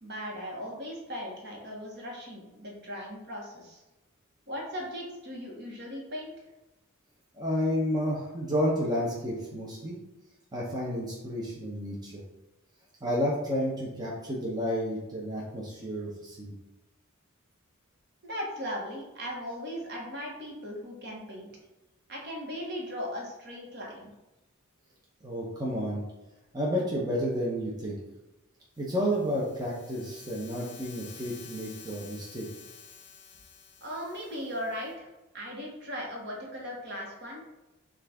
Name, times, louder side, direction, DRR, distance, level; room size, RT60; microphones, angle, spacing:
voice 1, 0.0-3.8 4.5-6.3 18.2-21.5 22.1-24.1 33.8-35.1 35.3-37.4, equal, 50° right, -1 dB, 1.1 m, -38 dB
voice 2, 7.3-10.0 10.5-12.2 13.0-16.5 25.2-26.0 26.5-28.0 28.8-32.5, equal, 20° right, -4 dB, 0.7 m, -31 dB
sound 1, 28.8-34.9, left 6 dB, 55° left, 0.9 m, -51 dB
6.1 x 2.5 x 3.4 m, 1.0 s
head